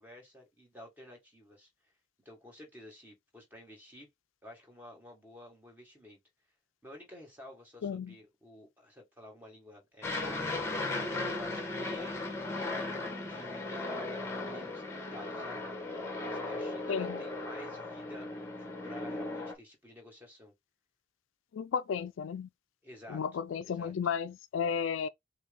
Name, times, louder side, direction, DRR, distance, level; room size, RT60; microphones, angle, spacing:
voice 1, 0.0-1.9 2.3-4.1 4.4-6.2 6.8-12.2 12.6-12.9 13.3-14.1 14.4-20.5 22.8-23.2 23.6-23.9, left 1 dB, 10° right, 1.9 m, -51 dB
voice 2, 7.8-8.1 16.9-17.2 21.5-22.5 23.1-25.1, left 6 dB, 65° left, 0.3 m, -33 dB
Aircraft, 10.0-19.5, left 2 dB, 10° left, 1.2 m, -37 dB
6.2 x 2.2 x 3.6 m
head